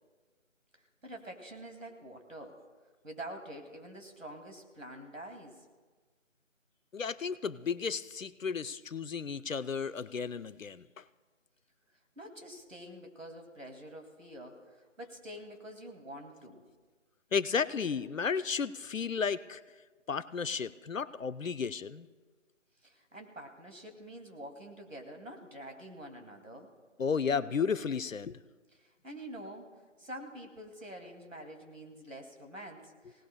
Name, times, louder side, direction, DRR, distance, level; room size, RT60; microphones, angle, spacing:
voice 1, 0.7-2.6 3.0-5.7 12.2-16.6 22.8-26.7 28.8-29.7 30.0-33.3, right 1 dB, 80° right, 4 dB, 2.3 m, -47 dB
voice 2, 6.9-11.0 17.3-19.6 20.1-22.1 27.0-28.4, left 6 dB, 90° left, 16 dB, 0.6 m, -33 dB
27.0 x 18.0 x 2.2 m, 1.4 s
figure-of-eight pair, 160°, 38 cm